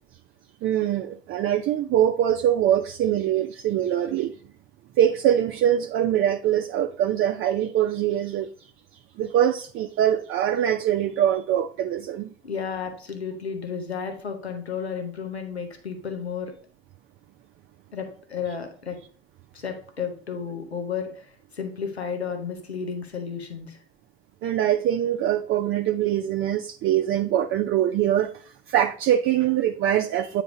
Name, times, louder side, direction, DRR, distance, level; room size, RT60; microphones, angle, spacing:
voice 1, 0.6-4.3 5.0-8.5 9.2-12.3 24.4-30.4, right 11 dB, 40° right, 5 dB, 0.5 m, -23 dB
voice 2, 12.4-16.5 17.9-19.0 19.5-23.8, left 6 dB, 90° left, 6 dB, 0.9 m, -32 dB
8.9 x 3.2 x 5.0 m, 0.42 s
figure-of-eight pair, 60°, 31 cm